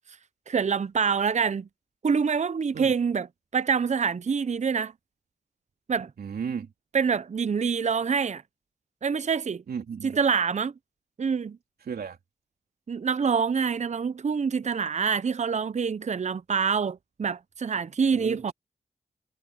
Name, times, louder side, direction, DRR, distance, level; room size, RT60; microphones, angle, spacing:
voice 1, 0.5-1.7 2.0-3.3 3.5-4.9 5.9-6.1 6.9-8.4 9.0-9.6 10.0-10.7 11.2-11.6 12.9-18.5, right 6 dB, 50° right, 0.7 m, -26 dB
voice 2, 6.2-6.7 9.7-10.1 11.9-12.2 18.1-18.5, right 6 dB, 80° right, 3.4 m, -34 dB
cardioid pair, 45°, 16 cm